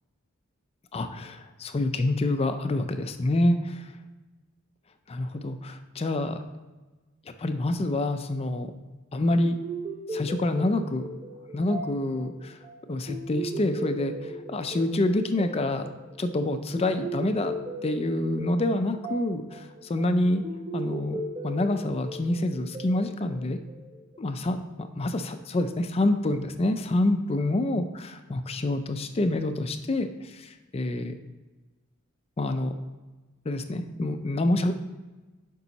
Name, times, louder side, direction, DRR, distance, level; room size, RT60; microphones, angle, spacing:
voice 1, 0.9-3.8 5.1-6.4 7.4-8.7 9.1-9.6 10.1-11.1 11.5-12.5 12.9-14.1 14.5-15.9 16.2-17.5 17.8-20.4 20.7-23.6 24.2-24.6 25.0-30.1 30.4-31.1 32.4-32.7 33.5-34.7, left 1 dB, 25° left, 8 dB, 0.4 m, -27 dB
sound 1, 9.4-24.2, right 1 dB, 25° right, 0.7 m, -38 dB
7.0 x 5.4 x 4.0 m, 1.2 s
head